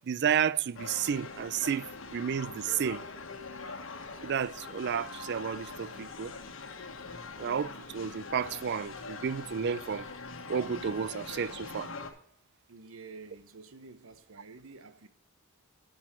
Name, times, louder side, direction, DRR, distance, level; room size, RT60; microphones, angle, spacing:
voice 1, 0.1-3.0 4.2-6.3 7.4-10.1 10.5-11.9, right 7 dB, 50° right, 0.4 m, -31 dB
sound 1, 0.7-12.1, left 4 dB, 65° left, 1.4 m, -43 dB
voice 2, 12.7-15.1, right 4 dB, 70° right, 1.0 m, -49 dB
12.0 x 6.2 x 4.4 m
head